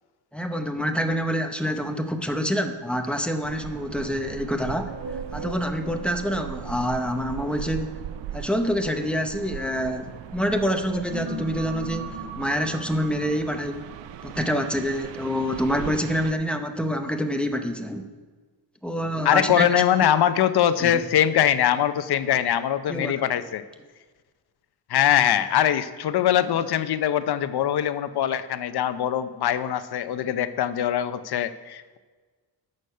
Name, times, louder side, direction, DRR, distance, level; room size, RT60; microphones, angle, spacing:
voice 1, 0.3-4.9 5.3-7.9 8.3-13.9 14.2-18.0 18.8-19.8 20.8-21.0 22.9-23.1, equal, 5° left, 5 dB, 0.6 m, -26 dB
sound 1, 3.4-16.3, right 11 dB, 90° right, 0.5 m, -39 dB
sound 2, 4.8-10.1 10.7-15.7, right 3 dB, 60° right, 1.7 m, -41 dB
voice 2, 19.2-23.6 24.9-32.0, left 10 dB, 65° left, 11 dB, 0.7 m, -22 dB
13.0 x 6.4 x 5.5 m, 1.4 s
wide cardioid pair, 170°, 42 cm